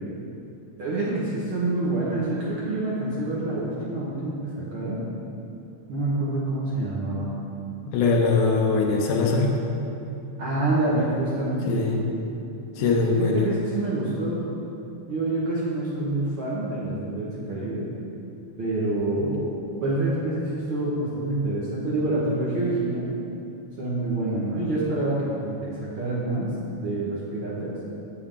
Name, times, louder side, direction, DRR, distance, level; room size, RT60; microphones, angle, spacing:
voice 1, 0.8-5.0 5.9-7.3 10.4-11.8 12.8-14.4 15.1-17.8 18.6-23.1 23.8-27.7, right 2 dB, 55° right, -7 dB, 1.6 m, -27 dB
voice 2, 7.9-9.5 11.7-12.0 12.8-13.5, left 4 dB, 80° left, 1 dB, 2.3 m, -22 dB
8.4 x 7.0 x 3.7 m, 2.8 s
omnidirectional pair, 3.6 m